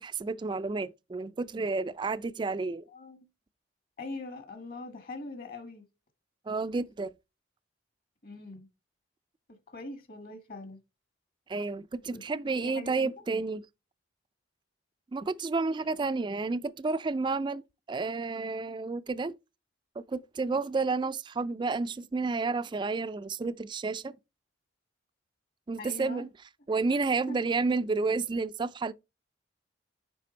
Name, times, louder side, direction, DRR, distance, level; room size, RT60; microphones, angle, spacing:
voice 1, 0.0-2.8 6.5-7.1 11.5-13.6 15.1-17.6 17.9-19.3 20.0-24.2 25.7-26.3 26.7-28.9, right 3 dB, 25° right, 0.3 m, -31 dB
voice 2, 2.9-3.2 4.0-5.8 8.2-8.7 9.7-10.8 12.1-12.2 12.5-13.1 15.8-15.9 20.5-20.6 25.8-26.2 26.7-26.8 27.3-27.4, left 2 dB, 50° left, 1.8 m, -42 dB
10.0 x 3.5 x 4.4 m
head